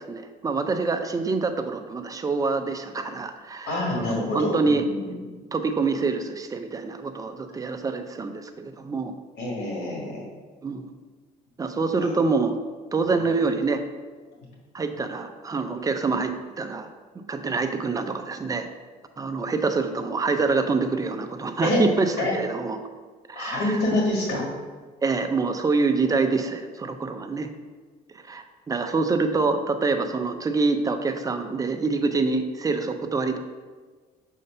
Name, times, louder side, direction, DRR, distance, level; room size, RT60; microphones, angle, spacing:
voice 1, 0.0-4.8 5.5-9.1 10.6-10.9 11.6-12.6 12.9-13.8 14.7-16.9 17.2-18.7 19.2-22.8 23.3-23.8 25.0-27.5 28.3-33.4, right 4 dB, 20° right, 6 dB, 0.5 m, -26 dB
voice 2, 3.7-5.4 9.4-10.2 12.0-12.2 13.1-13.2 21.6-21.8 22.2-22.3 23.3-24.4, left 1 dB, 85° left, -2 dB, 1.6 m, -27 dB
6.5 x 2.8 x 5.4 m, 1.4 s
cardioid pair, 110°, 17 cm